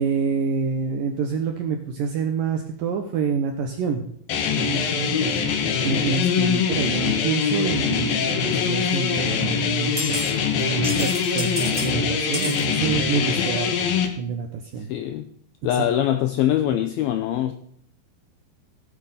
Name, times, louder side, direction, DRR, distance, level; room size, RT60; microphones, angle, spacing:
voice 1, 0.0-4.1 4.6-5.4 5.8-10.0 10.6-14.9 15.7-15.8, right 6 dB, 75° right, 2.1 m, -27 dB
sound 1, 4.3-14.1, left 6 dB, 65° left, 2.7 m, -23 dB
sound 2, 8.9-9.0 10.0-10.3 10.6-11.9 12.3-12.6, equal, 25° right, 1.3 m, -31 dB
voice 2, 14.8-15.3 15.6-17.5, left 11 dB, 80° left, 2.2 m, -23 dB
16.0 x 8.9 x 5.6 m
omnidirectional pair, 5.3 m